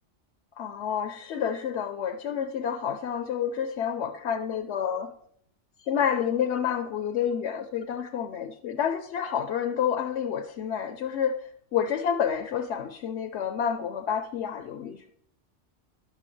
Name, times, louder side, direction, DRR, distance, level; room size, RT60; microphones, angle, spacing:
voice 1, 0.6-5.1 5.8-15.1, left 8 dB, 75° left, 0.9 m, -29 dB
11.5 x 8.3 x 3.2 m
omnidirectional pair, 1.2 m